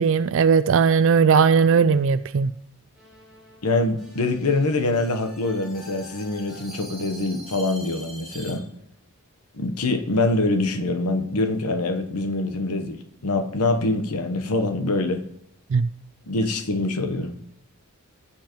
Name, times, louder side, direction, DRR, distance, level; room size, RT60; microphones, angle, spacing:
voice 1, 0.0-2.5 15.7-15.9, right 6 dB, 60° right, 14 dB, 0.4 m, -18 dB
sound 1, 3.0-8.5, right 1 dB, ahead, 5.0 m, -44 dB
voice 2, 3.6-8.6 9.5-15.2 16.3-17.4, left 2 dB, 90° left, 6 dB, 1.0 m, -24 dB
16.5 x 7.3 x 3.0 m, 0.72 s
head